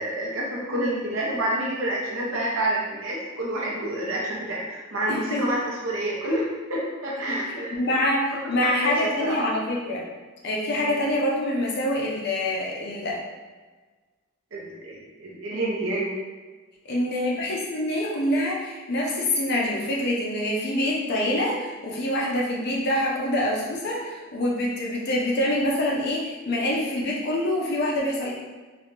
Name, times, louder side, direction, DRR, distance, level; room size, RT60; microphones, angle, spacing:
voice 1, 0.0-7.8 8.3-9.4 10.7-11.0 14.5-16.1, right 1 dB, 80° right, -4 dB, 0.8 m, -28 dB
voice 2, 5.1-5.6 7.2-7.4 7.7-10.0 10.4-13.2 16.9-28.3, left 1 dB, 55° left, -3 dB, 0.6 m, -25 dB
3.9 x 2.3 x 3.1 m, 1.3 s
head